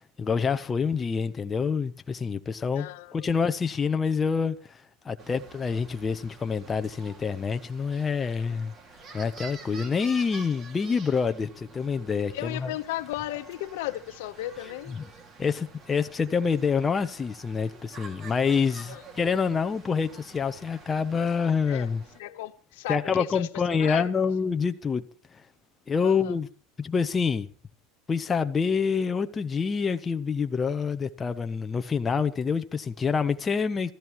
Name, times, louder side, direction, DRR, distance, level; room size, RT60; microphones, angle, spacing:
voice 1, 0.2-4.8 5.0-8.7 9.1-12.7 15.4-22.0 22.9-25.0 25.9-26.5 26.8-27.5 28.1-33.9, left 5 dB, 15° left, 0.8 m, -27 dB
voice 2, 2.7-3.5 12.3-15.0 18.8-19.0 21.7-21.9 22.1-24.2 26.0-26.4, left 15 dB, 85° left, 1.0 m, -35 dB
sound 1, 5.2-22.2, right 4 dB, 25° right, 2.3 m, -48 dB
25.5 x 14.0 x 3.1 m
cardioid pair, 160°, 0 cm